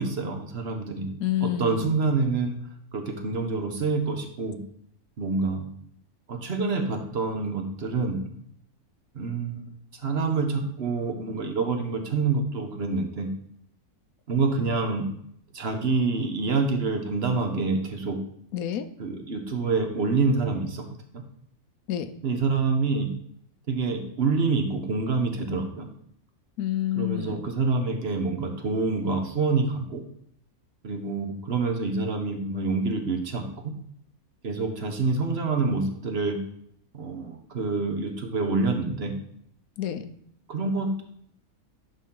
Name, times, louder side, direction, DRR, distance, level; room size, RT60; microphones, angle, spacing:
voice 1, 0.0-1.1 1.4-2.5 2.9-4.6 5.2-5.7 6.3-8.3 9.1-9.7 10.0-13.3 14.3-15.1 15.5-18.2 19.0-20.8 21.1-21.2 22.2-23.1 23.7-25.9 27.0-30.0 30.8-33.5 34.4-36.4 36.9-39.1 40.5-41.0, right 4 dB, 50° right, 4 dB, 1.1 m, -27 dB
voice 2, 1.2-1.9 18.5-18.9 21.9-22.1 26.6-27.4 39.8-40.1, left 12 dB, 85° left, 11 dB, 1.1 m, -28 dB
10.5 x 4.3 x 3.8 m, 0.69 s
omnidirectional pair, 1.5 m